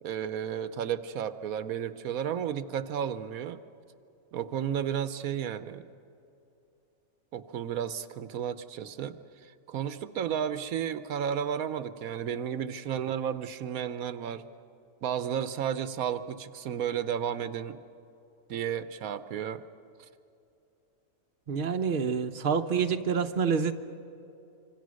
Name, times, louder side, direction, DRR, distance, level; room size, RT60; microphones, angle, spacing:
voice 1, 0.0-3.6 4.3-5.9 7.3-9.2 9.7-14.4 15.0-17.8 18.5-19.6, right 8 dB, 80° right, 12 dB, 1.2 m, -32 dB
voice 2, 21.5-23.7, right 6 dB, 40° right, 6 dB, 1.0 m, -27 dB
26.0 x 25.5 x 6.4 m, 2.7 s
omnidirectional pair, 1.5 m